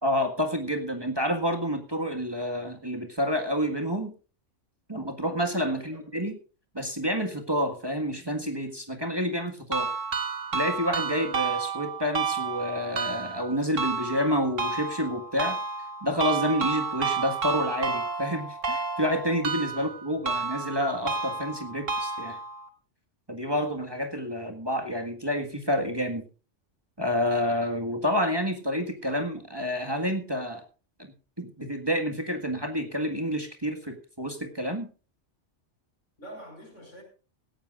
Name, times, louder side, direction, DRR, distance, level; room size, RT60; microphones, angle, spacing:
voice 1, 0.0-4.1 4.9-6.4 6.7-9.9 10.5-15.6 16.0-22.4 23.3-26.2 27.0-30.6 31.4-34.9, equal, 20° right, 1.7 m, -29 dB
sound 1, 9.7-22.7, right 4 dB, 90° right, 2.2 m, -31 dB
voice 2, 36.2-37.0, right 1 dB, 75° left, 5.5 m, -46 dB
17.5 x 15.0 x 2.4 m
omnidirectional pair, 1.3 m